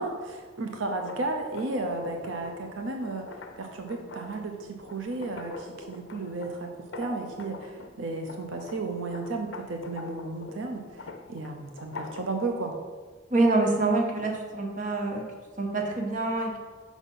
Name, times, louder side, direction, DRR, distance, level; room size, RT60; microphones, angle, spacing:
voice 1, 0.0-12.7, right 2 dB, 75° right, 3 dB, 0.6 m, -34 dB
sound 1, 1.0-8.0 8.3-12.4, left 3 dB, 70° left, 0.6 m, -44 dB
voice 2, 13.3-15.2 15.6-16.6, right 2 dB, 40° right, 1 dB, 0.9 m, -26 dB
5.9 x 4.1 x 5.4 m, 1.5 s
head